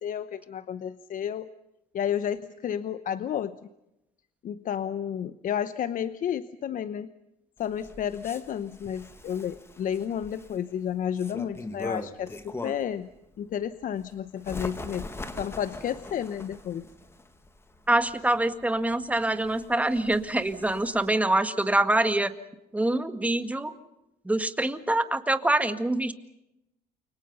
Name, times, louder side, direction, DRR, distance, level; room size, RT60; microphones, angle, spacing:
voice 1, 0.0-1.5 1.9-3.6 4.4-7.1 7.6-13.1 13.4-15.1 15.3-16.8, left 9 dB, 55° left, 13 dB, 0.9 m, -31 dB
Bird, 7.6-13.0 13.5-21.1, left 2 dB, 15° left, 2.0 m, -42 dB
voice 2, 17.9-22.3 22.7-23.7 24.3-26.1, right 1 dB, 10° right, 9 dB, 1.9 m, -25 dB
29.5 x 25.0 x 5.5 m, 0.88 s
cardioid pair, 110°, 17 cm